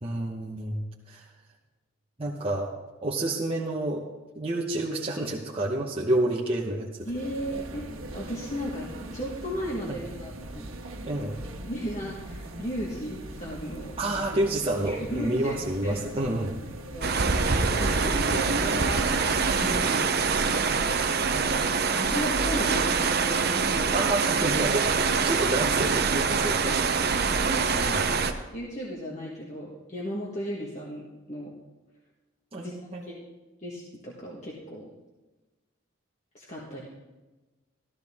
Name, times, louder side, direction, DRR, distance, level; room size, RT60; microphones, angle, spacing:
voice 1, 0.0-1.3 2.2-2.7 3.0-4.1 4.3-6.9 9.9-10.0 11.0-11.4 14.0-16.5 18.2-18.4 23.9-26.8 27.7-28.0 32.5-33.1, right 1 dB, 30° right, -4 dB, 1.1 m, -29 dB
voice 2, 7.0-7.9 8.1-10.7 11.7-14.0 14.8-16.1 16.9-17.5 17.8-19.1 19.6-20.3 21.9-24.1 26.4-26.6 27.2-28.1 28.5-31.5 32.6-32.7 33.0-33.2 33.6-34.9 36.3-36.9, equal, 35° left, -4 dB, 1.6 m, -35 dB
sound 1, 7.0-20.0, right 1 dB, 85° right, 1.5 m, -38 dB
sound 2, 17.0-28.3, right 5 dB, 50° right, 0.8 m, -25 dB
14.5 x 13.5 x 3.6 m, 1.1 s
head